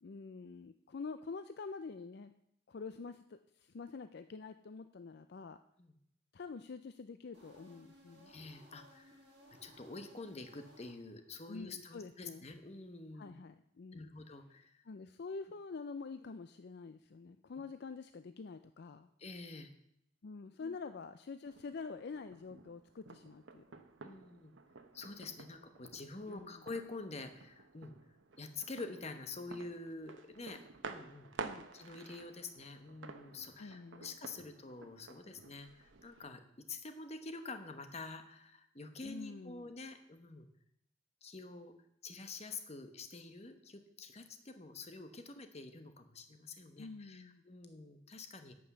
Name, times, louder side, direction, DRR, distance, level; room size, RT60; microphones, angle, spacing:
voice 1, 0.0-2.3 2.7-5.6 6.3-8.3 11.5-12.4 13.1-14.1 14.9-19.1 20.2-23.6 26.3-26.6 31.4-31.7 33.6-34.1 39.0-39.7 46.8-47.4, left 4 dB, 55° left, 10 dB, 0.4 m, -47 dB
sound 1, 7.3-11.4, equal, 25° right, 5.5 m, -61 dB
voice 2, 8.3-9.2 9.6-13.3 13.9-14.8 19.2-19.7 20.6-20.8 24.0-24.5 24.9-27.9 28.4-31.3 31.7-36.4 36.7-40.5 41.2-41.7 42.0-48.5, left 3 dB, 35° left, 7 dB, 1.1 m, -47 dB
sound 2, 21.4-36.3, right 4 dB, 85° right, 0.9 m, -52 dB
11.5 x 5.4 x 8.0 m, 0.74 s
head